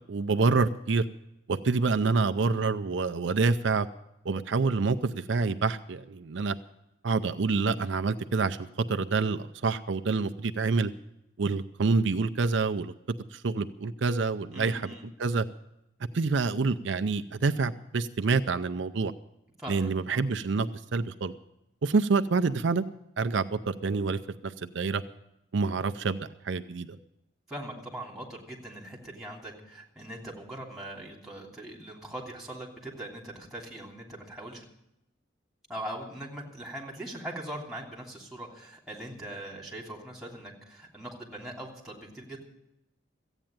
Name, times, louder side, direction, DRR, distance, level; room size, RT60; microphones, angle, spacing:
voice 1, 0.1-1.0 1.5-3.9 4.2-6.6 7.0-10.9 11.4-12.9 13.3-14.9 15.2-15.5 16.1-19.1 19.7-21.3 21.8-22.8 23.2-25.0 25.5-26.2 26.4-27.0, right 4 dB, 70° right, 10 dB, 0.5 m, -27 dB
voice 2, 14.5-15.1 19.6-20.3 27.5-34.6 35.7-42.4, right 1 dB, ahead, -2 dB, 3.0 m, -41 dB
14.5 x 9.0 x 8.9 m, 0.85 s
head